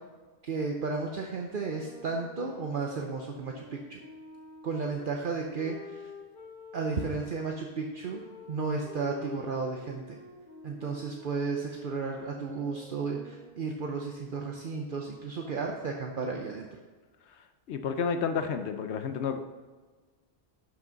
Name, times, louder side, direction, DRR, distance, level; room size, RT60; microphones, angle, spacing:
voice 1, 0.4-4.0 4.6-6.1 6.7-8.2 8.5-10.2 10.6-16.7, right 4 dB, 55° right, 1 dB, 0.9 m, -33 dB
sound 1, 1.5-7.3 8.1-13.7, left 3 dB, 50° left, 1.7 m, -49 dB
voice 2, 17.7-19.4, left 6 dB, 85° left, 8 dB, 0.9 m, -30 dB
11.0 x 6.0 x 4.0 m, 1.4 s
omnidirectional pair, 1.1 m